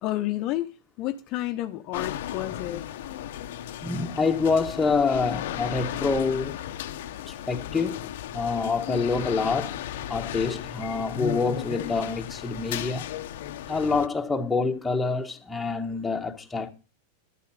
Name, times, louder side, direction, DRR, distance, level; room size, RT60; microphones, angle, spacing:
voice 1, 0.0-2.8, left 15 dB, 45° left, 1.0 m, -30 dB
sound 1, 1.9-14.1, left 11 dB, 70° left, 0.9 m, -35 dB
voice 2, 3.8-6.6 7.3-9.8 10.1-13.1 13.7-16.7, left 4 dB, 10° left, 1.5 m, -26 dB
12.0 x 9.4 x 5.0 m
supercardioid pair, 135°, 0 cm